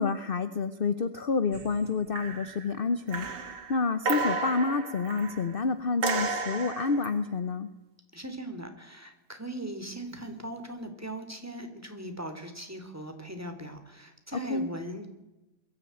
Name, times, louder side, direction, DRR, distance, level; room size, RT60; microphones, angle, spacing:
voice 1, 0.0-3.3 3.7-7.7 14.3-14.7, left 4 dB, 45° left, 12 dB, 0.8 m, -29 dB
sound 1, 1.5-1.9 2.2-2.7 3.1-5.5 6.0-7.1 10.1-10.4, right 4 dB, 65° right, 2.3 m, -33 dB
voice 2, 8.1-15.1, right 1 dB, 10° right, 6 dB, 2.7 m, -39 dB
22.0 x 14.0 x 9.2 m, 0.98 s
omnidirectional pair, 2.0 m